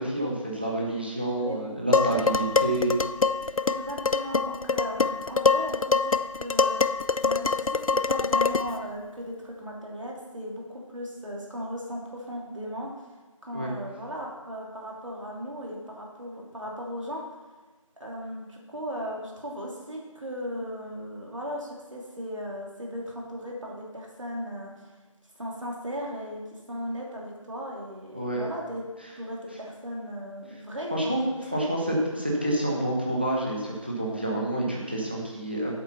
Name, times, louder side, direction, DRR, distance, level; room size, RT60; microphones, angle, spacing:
voice 1, 0.0-3.0 13.5-13.7 28.1-28.5 30.9-31.2 31.5-35.8, right 1 dB, 20° right, -3 dB, 1.0 m, -28 dB
voice 2, 1.4-1.7 3.6-6.8 7.2-12.9 13.4-17.2 18.0-24.9 25.4-28.8 29.2-31.3, equal, 65° right, -2 dB, 2.9 m, -37 dB
Dishes pots and pans, 1.9-8.8, left 4 dB, 85° left, 0.5 m, -25 dB
8.5 x 7.4 x 5.5 m, 1.3 s
figure-of-eight pair, 180°, 17 cm